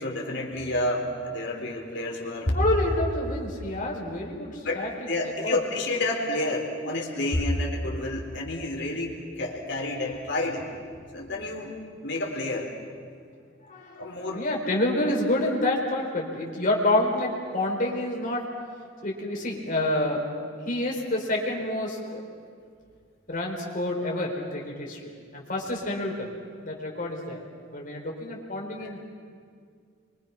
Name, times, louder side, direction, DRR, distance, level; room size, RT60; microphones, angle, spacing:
voice 1, 0.0-2.6 4.6-10.7 11.1-11.7 12.0-12.7 14.0-14.4 28.8-28.9, left 1 dB, 60° left, 0 dB, 3.7 m, -29 dB
voice 2, 2.5-4.9 5.4-5.6 13.7-18.5 19.0-20.2 20.6-22.2 23.3-25.0 25.3-26.3 26.6-27.4 27.7-29.0, left 1 dB, 40° left, -1 dB, 4.3 m, -28 dB
27.0 x 24.0 x 5.9 m, 2.2 s
head